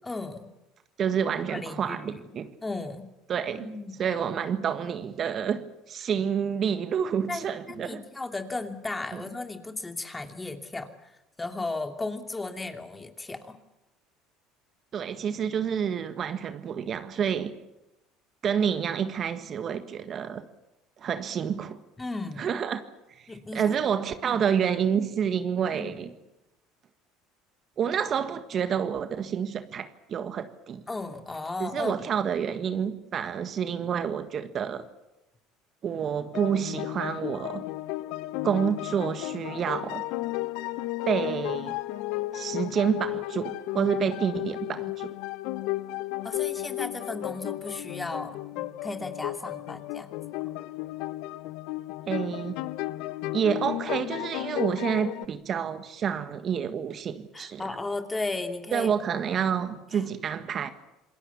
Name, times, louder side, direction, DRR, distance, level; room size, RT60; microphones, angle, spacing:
voice 1, 0.0-0.5 1.4-2.3 2.6-3.1 3.3-4.0 7.3-13.6 22.0-22.5 23.3-23.7 24.2-24.4 25.7-26.0 30.9-32.0 46.2-50.1 57.3-58.9 59.7-60.0, left 3 dB, 15° left, 2.8 m, -35 dB
voice 2, 1.0-2.6 3.3-3.7 4.0-8.0 9.1-9.2 14.9-17.6 18.4-20.5 21.0-21.8 22.4-22.8 23.1-26.1 27.8-30.8 31.6-34.9 35.8-37.7 38.4-40.0 41.0-41.8 42.3-45.1 52.1-52.6 53.3-57.6 58.7-60.7, right 7 dB, 45° right, 1.6 m, -28 dB
sound 1, 36.3-55.3, left 17 dB, 70° left, 0.8 m, -34 dB
27.0 x 21.0 x 7.3 m
hypercardioid pair, 75°, 0 cm